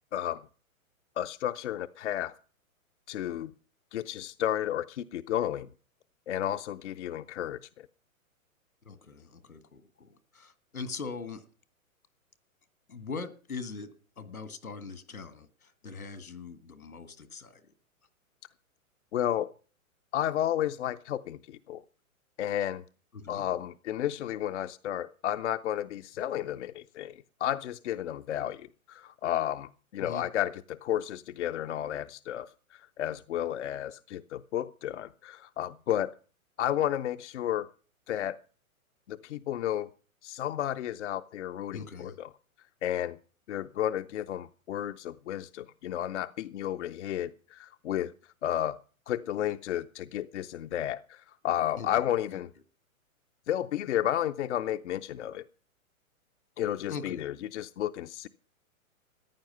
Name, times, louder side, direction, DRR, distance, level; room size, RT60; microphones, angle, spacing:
voice 1, 0.1-0.5 1.2-2.3 3.1-3.5 3.9-5.7 6.3-7.9 19.1-19.5 20.1-21.8 22.4-22.8 23.3-36.2 36.6-37.7 38.1-38.4 39.1-39.9 40.2-42.3 42.8-43.2 43.5-48.1 48.4-48.8 49.1-52.5 53.5-55.4 56.6-58.3, left 11 dB, 55° left, 0.6 m, -32 dB
voice 2, 8.9-11.4 12.9-13.9 14.2-17.6 23.1-23.4 30.0-30.2 41.7-42.1 51.8-51.9 52.3-52.4 56.9-57.3, left 4 dB, 80° left, 1.9 m, -41 dB
14.5 x 10.5 x 5.5 m
figure-of-eight pair, 115°, 42 cm